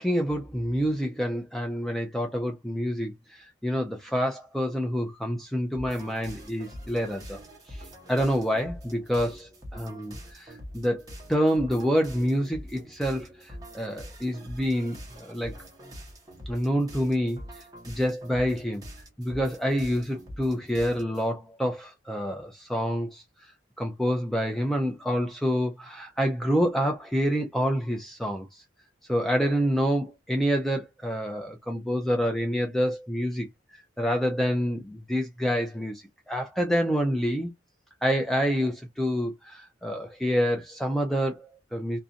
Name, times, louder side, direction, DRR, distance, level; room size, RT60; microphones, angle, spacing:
voice 1, 0.0-7.4 7.7-15.6 16.5-18.8 19.2-23.5 23.8-28.6 29.1-33.5 34.0-37.5 38.0-42.0, equal, ahead, 0.4 m, -27 dB
sound 1, 5.7-21.3, equal, 20° right, 1.0 m, -44 dB
2.5 x 2.1 x 2.6 m
head